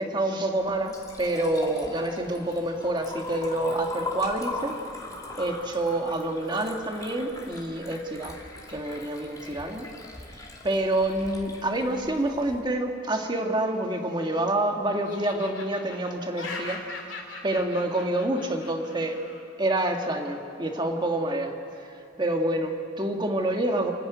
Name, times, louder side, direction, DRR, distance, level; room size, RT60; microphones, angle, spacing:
voice 1, 0.0-4.8 5.4-8.4 8.7-9.9 10.6-16.8 17.4-19.2 19.6-21.5 21.8-23.9, right 1 dB, 25° right, 3 dB, 1.7 m, -27 dB
Liquid, 0.6-12.6, left 2 dB, 20° left, 2.6 m, -40 dB
Laughter, 13.8-14.7 15.0-19.4, left 3 dB, 85° left, 2.9 m, -41 dB
29.0 x 10.0 x 9.4 m, 2.5 s
head